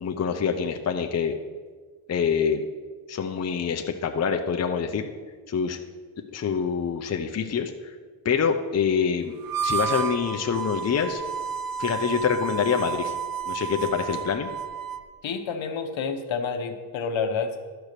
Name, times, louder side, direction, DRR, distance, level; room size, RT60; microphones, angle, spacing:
voice 1, 0.0-1.3 2.1-2.6 3.1-5.1 5.5-5.8 6.3-7.9 8.2-9.3 9.6-11.2 11.8-13.1 13.5-14.5, left 6 dB, 35° left, 4 dB, 0.6 m, -25 dB
Harmonica, 9.4-15.1, right 6 dB, 45° right, 0.6 m, -31 dB
voice 2, 15.2-17.6, left 5 dB, 70° left, 6 dB, 1.1 m, -29 dB
12.0 x 4.6 x 6.7 m, 1.5 s
cardioid pair, 115°, 48 cm